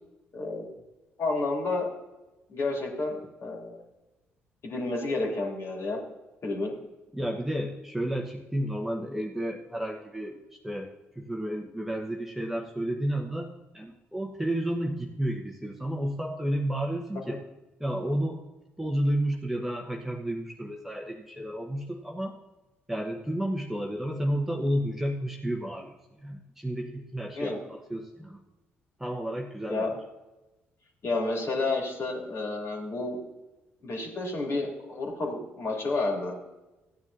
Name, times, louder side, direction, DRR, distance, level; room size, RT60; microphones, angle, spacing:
voice 1, 0.3-0.7 1.2-1.9 2.5-3.8 4.6-6.0 6.4-6.7 27.3-27.6 29.7-29.9 31.0-33.2 33.8-36.3, left 2 dB, 45° left, -1 dB, 2.9 m, -30 dB
voice 2, 7.1-10.9 11.1-17.4 17.8-18.4 18.8-22.3 22.9-28.4 29.0-29.9, right 1 dB, 5° right, 1 dB, 1.2 m, -31 dB
15.5 x 9.8 x 2.7 m, 1.1 s
figure-of-eight pair, 45°, 6 cm